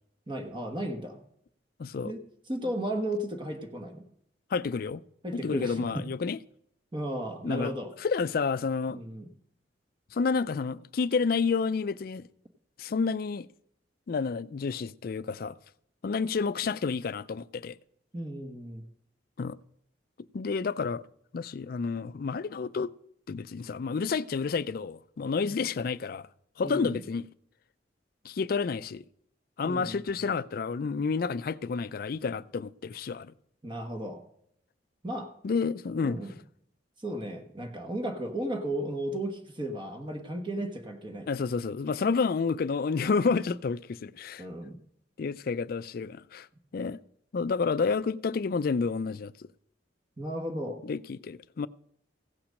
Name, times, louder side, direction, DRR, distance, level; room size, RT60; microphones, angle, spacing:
voice 1, 0.3-1.2 2.0-2.2 2.5-4.0 5.2-6.1 6.9-7.9 8.9-9.3 18.1-18.8 25.4-25.6 26.6-27.0 29.6-30.0 33.6-34.2 35.0-35.3 36.0-36.4 37.0-41.3 44.4-44.8 50.2-50.9, right 1 dB, 25° right, 1.2 m, -35 dB
voice 2, 1.8-2.1 4.5-5.0 5.3-6.4 7.4-7.7 8.0-9.0 10.1-12.3 12.8-13.5 14.1-15.5 16.0-17.8 19.4-19.6 20.3-21.0 21.3-22.9 23.3-26.3 26.6-27.3 28.2-29.0 29.6-33.3 35.4-36.2 41.3-44.4 45.2-46.5 46.7-47.0 47.3-49.5 50.8-51.7, left 5 dB, 55° left, 0.4 m, -30 dB
15.5 x 5.9 x 6.4 m
head